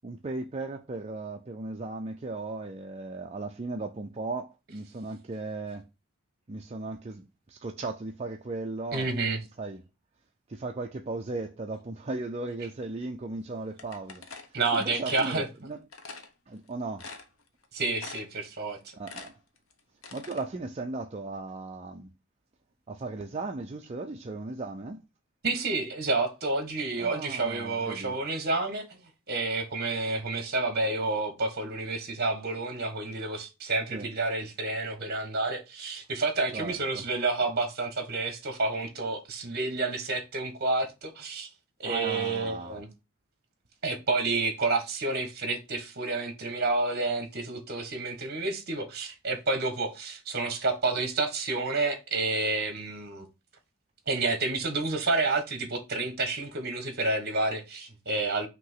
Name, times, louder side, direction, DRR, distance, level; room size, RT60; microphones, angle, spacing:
voice 1, 0.0-5.8 6.5-9.1 9.6-9.8 10.5-14.2 14.7-15.8 16.5-17.1 19.0-19.3 20.1-22.1 22.9-25.0 27.0-28.2 33.9-34.1 36.5-37.0 41.8-42.8, right 3 dB, 30° right, 0.5 m, -36 dB
voice 2, 8.9-9.4 14.5-15.5 17.7-18.8 25.4-29.0 29.3-41.5 41.8-42.9 43.8-53.3 54.1-58.5, right 3 dB, 50° right, 1.5 m, -29 dB
sound 1, 13.8-15.4 15.9-16.3 16.7-16.8 17.0-17.6 18.0-18.4 18.7-20.4, left 4 dB, 80° left, 1.0 m, -44 dB
5.8 x 2.9 x 5.6 m
head